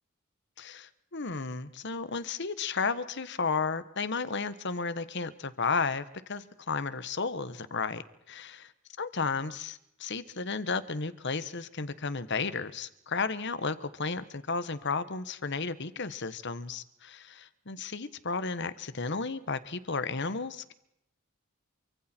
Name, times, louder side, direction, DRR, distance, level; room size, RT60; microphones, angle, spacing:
voice 1, 0.6-8.0 8.3-8.7 9.0-20.7, left 4 dB, 60° left, 13 dB, 1.3 m, -33 dB
28.0 x 25.0 x 4.5 m, 0.79 s
head